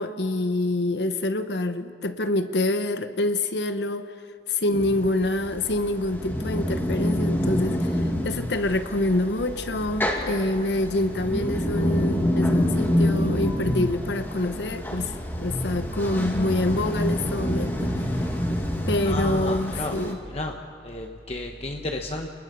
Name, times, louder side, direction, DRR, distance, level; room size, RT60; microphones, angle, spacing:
voice 1, 0.0-4.1 4.5-18.3 18.9-20.2, left 1 dB, 75° left, 9 dB, 1.1 m, -26 dB
sound 1, 4.7-20.1, left 1 dB, 10° left, 2.4 m, -27 dB
voice 2, 19.0-20.0 20.3-20.5 20.8-22.3, left 2 dB, 35° left, 3 dB, 1.2 m, -31 dB
27.5 x 20.5 x 6.9 m, 2.4 s
head